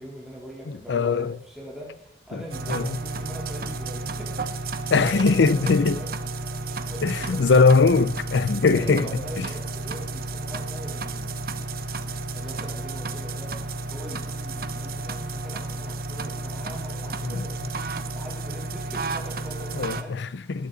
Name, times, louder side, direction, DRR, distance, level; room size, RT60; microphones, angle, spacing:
voice 1, 0.0-6.1 6.6-7.7 8.7-11.3 12.3-13.5 13.9-17.7 18.1-20.2, equal, ahead, 3.4 m, -41 dB
voice 2, 0.7-1.3 2.3-2.4 2.7-3.0 4.9-6.0 7.0-9.1 9.4-9.5 17.2-17.5 19.7-20.7, left 4 dB, 80° left, 0.5 m, -21 dB
sound 1, 2.5-20.0, right 2 dB, 55° right, 0.9 m, -32 dB
19.5 x 10.0 x 4.0 m
head